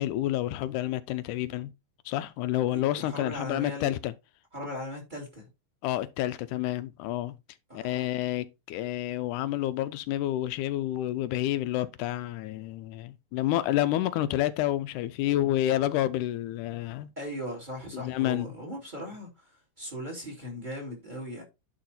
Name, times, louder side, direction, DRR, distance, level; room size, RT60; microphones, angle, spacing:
voice 1, 0.0-1.7 2.1-4.1 5.8-7.3 7.7-17.1 17.9-18.5, left 14 dB, 85° left, 2.0 m, -29 dB
voice 2, 2.7-3.9 4.5-5.5 7.7-8.0 17.2-21.4, equal, 15° right, 2.5 m, -38 dB
10.5 x 4.1 x 4.2 m
omnidirectional pair, 3.6 m